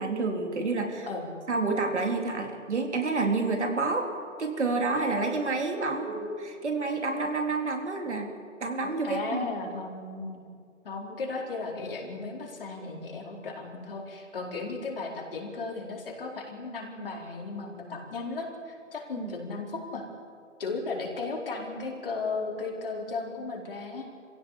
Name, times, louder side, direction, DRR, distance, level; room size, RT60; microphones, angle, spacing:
voice 1, 0.0-1.1 1.5-4.1 4.4-8.3 8.6-9.5 19.2-19.3, right 3 dB, 65° right, 3 dB, 3.8 m, -29 dB
voice 2, 9.0-10.5 10.8-20.0 20.6-24.1, left 3 dB, 45° left, 0 dB, 4.5 m, -35 dB
24.5 x 16.5 x 8.5 m, 2.3 s
hypercardioid pair, 170°, 37 cm